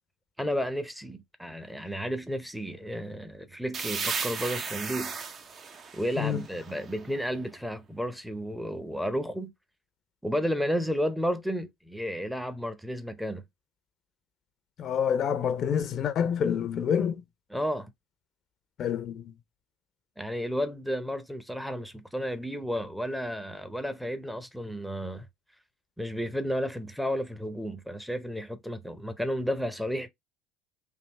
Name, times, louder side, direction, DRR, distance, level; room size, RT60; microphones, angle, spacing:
voice 1, 0.4-5.2 5.9-9.5 10.2-13.4 17.5-17.9 20.2-25.3 26.0-30.1, equal, ahead, 0.7 m, -32 dB
sound 1, 3.7-7.3, right 5 dB, 40° right, 0.7 m, -35 dB
voice 2, 14.8-17.2 18.8-19.3, left 8 dB, 45° left, 0.6 m, -27 dB
3.4 x 2.7 x 4.1 m
hypercardioid pair, 70°, 0 cm